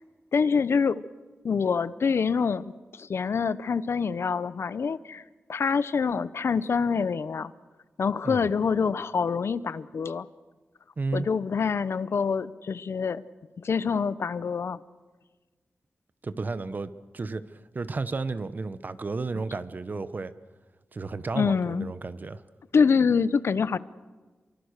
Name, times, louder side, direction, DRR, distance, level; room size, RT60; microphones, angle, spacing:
voice 1, 0.3-1.0 1.4-2.7 3.0-5.2 5.5-7.5 8.0-10.3 11.1-13.2 13.6-14.8 21.3-21.9 22.7-23.8, left 5 dB, 70° left, 16 dB, 0.7 m, -25 dB
voice 2, 11.0-11.3 16.2-20.3 20.9-22.4, right 3 dB, 40° right, 13 dB, 0.9 m, -33 dB
29.0 x 23.5 x 6.6 m, 1.3 s
wide cardioid pair, 140°, 4 cm